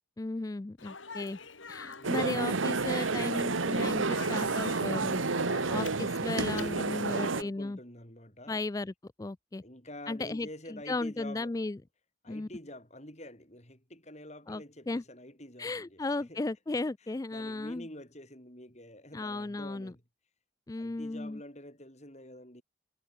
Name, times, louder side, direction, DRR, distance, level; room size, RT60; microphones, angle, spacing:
voice 1, 0.2-1.4 1.7-5.2 5.7-7.8 8.5-9.6 10.1-11.8 12.3-12.5 14.5-15.0 15.6-17.9 19.1-19.9 20.7-21.4, left 2 dB, 15° left, 0.3 m, -35 dB
Speech, 0.8-7.2, left 4 dB, 80° left, 4.0 m, -45 dB
sound 1, 2.0-7.4, right 4 dB, 85° right, 1.1 m, -30 dB
voice 2, 5.3-6.1 6.5-8.6 9.6-11.5 12.2-16.0 16.3-16.4 17.3-20.0 20.8-22.6, left 1 dB, 35° left, 7.6 m, -47 dB
head